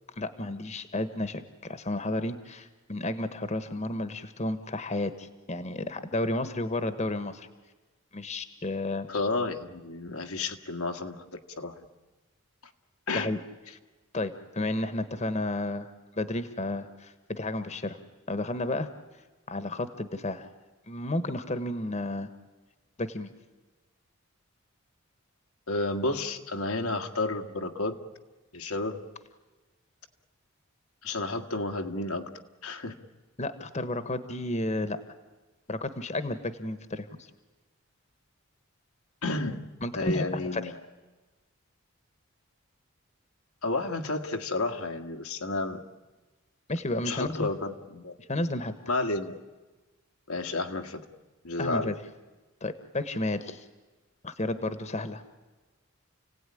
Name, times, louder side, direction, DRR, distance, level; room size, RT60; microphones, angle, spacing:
voice 1, 0.2-7.5 8.1-9.1 13.1-13.4 14.1-15.9 16.2-18.0 18.3-18.9 19.5-20.5 20.9-22.3 23.0-23.3 33.4-35.0 35.7-37.3 39.8-40.7 46.7-47.5 48.3-48.8 51.6-51.9 52.6-53.6 54.2-55.2, left 2 dB, 30° left, 11 dB, 1.2 m, -32 dB
voice 2, 9.1-11.9 13.1-13.3 25.7-28.0 28.5-29.0 31.0-32.3 32.6-32.9 39.2-39.6 39.9-40.8 43.6-45.8 47.0-48.2 48.9-49.4 50.3-51.0 51.4-51.9, left 2 dB, 90° left, 5 dB, 1.8 m, -31 dB
29.5 x 17.0 x 9.9 m, 1.2 s
head